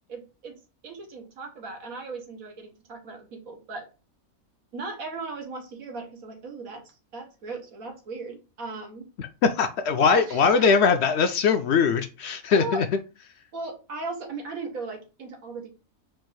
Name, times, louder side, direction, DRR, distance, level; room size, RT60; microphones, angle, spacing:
voice 1, 0.1-0.6 0.8-3.9 4.7-9.0 10.1-10.7 12.5-12.8 13.5-15.7, right 3 dB, 90° right, 3 dB, 1.7 m, -37 dB
voice 2, 9.2-12.9, left 5 dB, 65° left, 8 dB, 0.7 m, -21 dB
4.5 x 2.4 x 4.6 m, 0.31 s
omnidirectional pair, 1.4 m